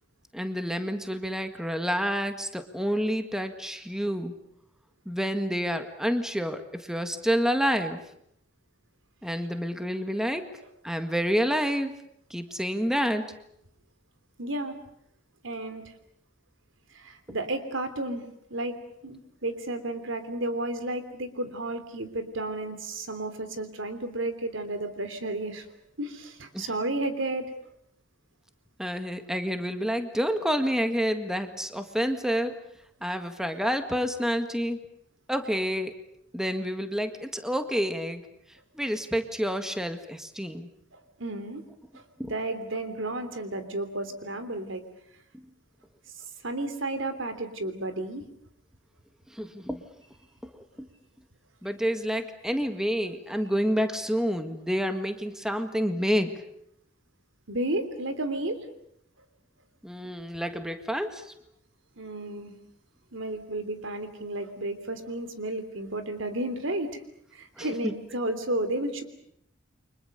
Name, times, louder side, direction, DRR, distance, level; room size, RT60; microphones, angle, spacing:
voice 1, 0.3-4.3 5.1-8.0 9.2-10.4 10.8-11.9 12.3-13.3 26.5-26.7 28.8-32.5 33.0-34.8 35.3-35.9 36.3-38.2 38.8-40.7 42.2-42.3 49.3-49.8 50.4-50.6 51.6-56.3 59.8-61.2 67.6-67.9, equal, 5° right, 7 dB, 1.8 m, -28 dB
voice 2, 14.4-14.8 15.4-15.8 16.9-18.2 18.5-18.8 19.0-25.6 26.0-27.5 40.9-41.6 41.9-44.8 46.4-48.2 57.5-58.6 62.0-62.5 63.1-67.0 67.3-69.0, right 2 dB, 85° right, 9 dB, 3.3 m, -32 dB
29.5 x 24.5 x 6.8 m, 0.73 s
head